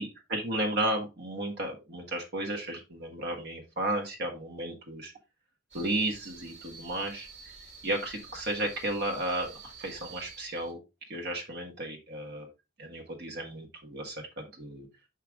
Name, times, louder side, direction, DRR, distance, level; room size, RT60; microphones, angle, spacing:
voice 1, 0.0-5.1 5.7-7.5 7.8-10.8 11.1-12.5 12.8-14.9, right 1 dB, 55° right, 2 dB, 1.5 m, -34 dB
sound 1, 5.7-10.7, right 5 dB, 35° right, 2.0 m, -49 dB
6.4 x 5.5 x 3.5 m, 0.26 s
head